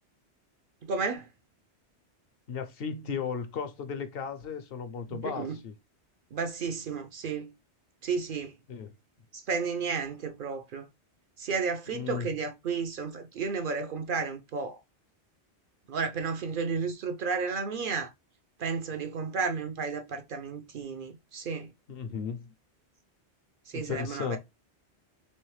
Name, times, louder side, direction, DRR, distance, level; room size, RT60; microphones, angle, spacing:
voice 1, 0.9-1.3 5.1-5.6 6.3-7.5 8.0-8.5 9.3-10.9 11.4-14.8 15.9-18.1 18.6-21.7 23.7-24.4, right 5 dB, 60° right, 0.6 m, -32 dB
voice 2, 2.5-5.7 8.7-8.9 11.9-12.3 21.9-22.5 23.7-24.4, left 6 dB, 65° left, 0.8 m, -35 dB
3.3 x 3.2 x 3.1 m
omnidirectional pair, 1.1 m